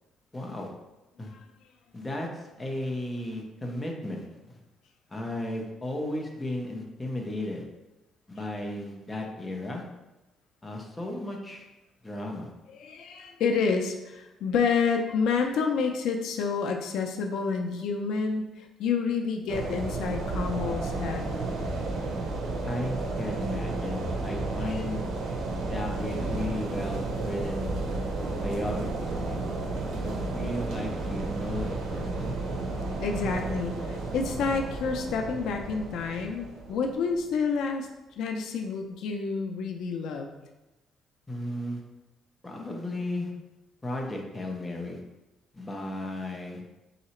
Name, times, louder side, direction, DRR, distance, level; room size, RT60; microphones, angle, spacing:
voice 1, 0.3-0.7 1.2-1.3 1.9-4.6 5.1-7.7 8.3-9.8 10.6-11.7 12.0-12.5 22.7-25.0 25.7-27.7 28.4-29.5 29.9-32.4 41.3-41.8 42.4-43.3 43.8-45.0 45.5-46.6, left 1 dB, 10° left, 0 dB, 0.6 m, -35 dB
voice 2, 12.7-21.4 24.6-24.8 33.0-37.9 38.2-40.3, left 5 dB, 75° left, 4 dB, 0.4 m, -29 dB
sound 1, 19.5-37.4, right 2 dB, 85° right, 0.8 m, -32 dB
3.9 x 2.8 x 4.3 m, 1.0 s
cardioid pair, 160°, 0 cm